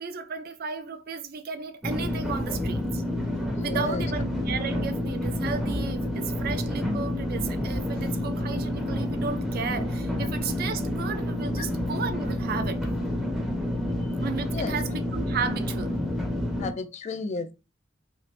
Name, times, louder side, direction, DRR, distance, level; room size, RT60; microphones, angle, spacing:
voice 1, 0.0-3.0 3.6-12.8 14.2-15.9, right 5 dB, 55° right, 0.4 m, -34 dB
sound 1, 1.8-16.7, left 1 dB, ahead, 0.6 m, -29 dB
voice 2, 3.5-4.1 11.6-11.7 14.4-15.0 16.6-17.5, left 3 dB, 35° left, 0.3 m, -34 dB
2.7 x 2.4 x 3.1 m
head